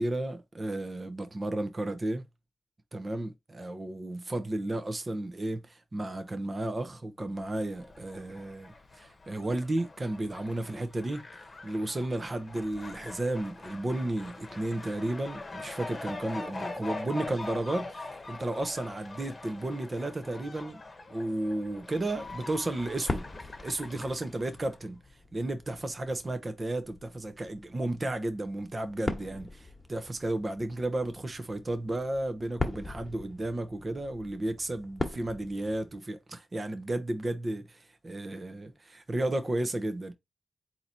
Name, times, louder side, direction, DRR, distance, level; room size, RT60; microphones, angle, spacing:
voice 1, 0.0-2.2 2.9-20.8 21.1-40.1, right 1 dB, 35° right, 0.8 m, -33 dB
Fowl, 7.4-24.8, left 3 dB, 45° left, 1.0 m, -43 dB
sound 1, 21.7-36.0, left 2 dB, 25° left, 1.3 m, -41 dB
4.0 x 2.9 x 4.3 m
cardioid pair, 55°, 0 cm